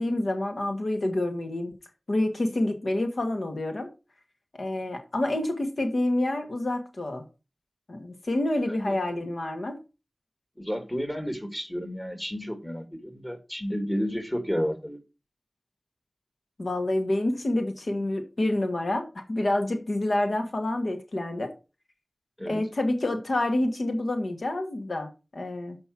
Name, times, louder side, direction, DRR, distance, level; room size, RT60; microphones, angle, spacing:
voice 1, 0.0-1.7 2.1-3.9 4.6-7.2 7.9-9.8 16.6-21.5 22.5-25.8, left 1 dB, 80° left, 1.4 m, -28 dB
voice 2, 8.7-9.0 10.6-15.0 22.4-22.6, equal, 15° left, 2.0 m, -31 dB
7.1 x 5.2 x 5.9 m
wide cardioid pair, 40°, 0 cm